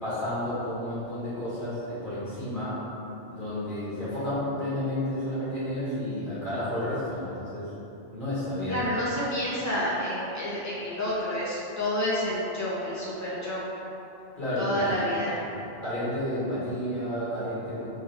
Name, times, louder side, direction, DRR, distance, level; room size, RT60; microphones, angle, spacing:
voice 1, 0.0-2.8 3.3-7.7 8.1-8.9 14.4-15.5 15.8-17.9, left 1 dB, 45° left, -12 dB, 1.5 m, -31 dB
voice 2, 8.7-13.7 14.6-15.4, left 1 dB, 20° left, -8 dB, 0.7 m, -29 dB
3.4 x 3.0 x 3.4 m, 3.0 s
omnidirectional pair, 1.2 m